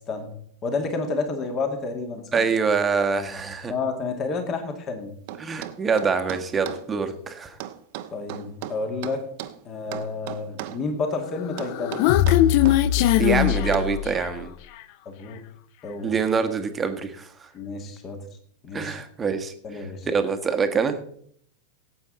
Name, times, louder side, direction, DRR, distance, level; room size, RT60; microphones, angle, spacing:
voice 1, 0.6-2.5 3.7-5.1 8.1-9.2 9.7-12.0 15.1-15.4 15.8-16.2 17.5-18.2 18.6-19.0 19.6-20.1, left 3 dB, 30° left, 6 dB, 2.1 m, -30 dB
voice 2, 2.3-3.7 5.4-7.6 13.2-14.5 16.0-17.5 18.7-19.5 20.0-21.0, right 5 dB, 20° right, 7 dB, 1.4 m, -25 dB
sound 1, 5.3-6.9 7.6-9.6 9.9-10.8 11.6-12.8 13.7-14.0, right 13 dB, 50° right, 0.9 m, -36 dB
Human voice, 11.4-14.4, left 13 dB, 45° left, 0.6 m, -20 dB
17.0 x 8.6 x 4.0 m, 0.65 s
figure-of-eight pair, 90°, 0 cm